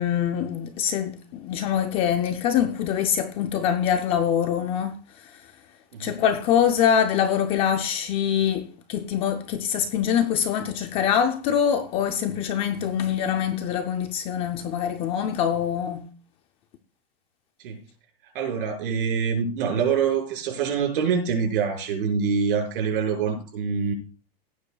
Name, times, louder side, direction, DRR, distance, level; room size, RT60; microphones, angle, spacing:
voice 1, 0.0-5.5 6.0-16.1, left 8 dB, 20° left, 0.5 m, -24 dB
voice 2, 5.9-6.2 17.6-17.8 18.3-23.9, right 6 dB, 60° right, 5.9 m, -25 dB
17.0 x 9.8 x 2.3 m
supercardioid pair, 170°, 31 cm